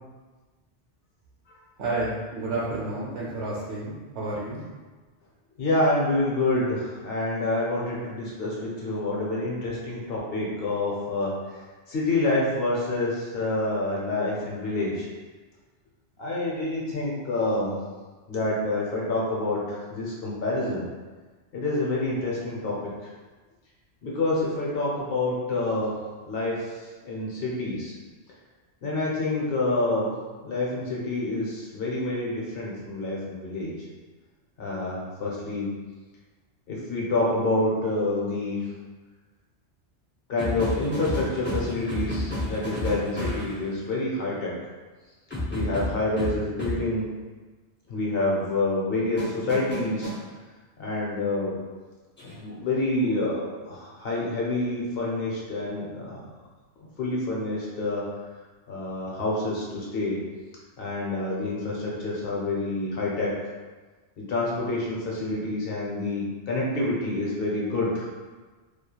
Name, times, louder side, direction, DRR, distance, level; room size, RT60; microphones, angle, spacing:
voice 1, 1.8-4.6, right 2 dB, 75° right, -7 dB, 0.9 m, -30 dB
voice 2, 5.6-11.3 11.9-15.1 16.2-17.8 18.3-20.8 21.5-22.8 24.0-26.0 26.3-26.7 27.0-27.9 28.8-30.1 30.4-33.7 34.6-35.7 36.7-38.7 40.3-44.5 45.5-47.1 47.9-50.1 50.8-51.6 52.4-56.2 57.0-58.0 58.7-60.2 60.8-63.3 64.2-68.1, left 2 dB, 60° left, -4 dB, 0.8 m, -27 dB
sound 1, 40.4-43.6 45.3-46.8 49.2-50.2 52.2-52.4, left 1 dB, 15° left, 0.4 m, -31 dB
2.9 x 2.4 x 2.2 m, 1.3 s
omnidirectional pair, 1.2 m